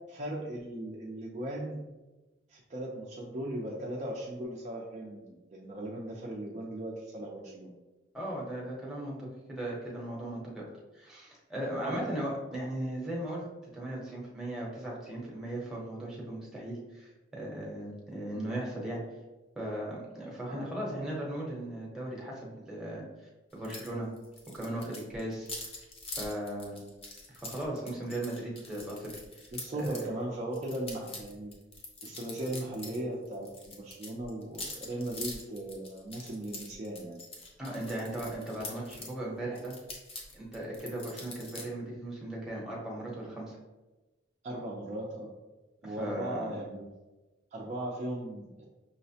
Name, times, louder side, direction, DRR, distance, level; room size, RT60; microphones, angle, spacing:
voice 1, 0.1-1.9 2.5-5.2 5.5-7.7 11.8-12.2 20.5-20.8 29.5-31.5 32.0-37.2 44.4-45.3 45.8-46.9 47.5-48.7, right 1 dB, 35° right, -2 dB, 0.4 m, -37 dB
voice 2, 8.1-10.6 10.9-13.4 13.7-19.0 19.6-23.0 23.5-24.1 24.5-25.5 26.2-26.8 27.3-29.5 29.8-30.0 37.6-39.7 40.3-43.6 45.8-46.5, right 1 dB, 5° right, -4 dB, 0.8 m, -37 dB
sound 1, 23.6-23.9 24.2-30.1 30.5-33.0 33.2-39.1 39.5-41.6, left 2 dB, 30° left, 0.6 m, -44 dB
5.5 x 2.0 x 2.7 m, 1.1 s
head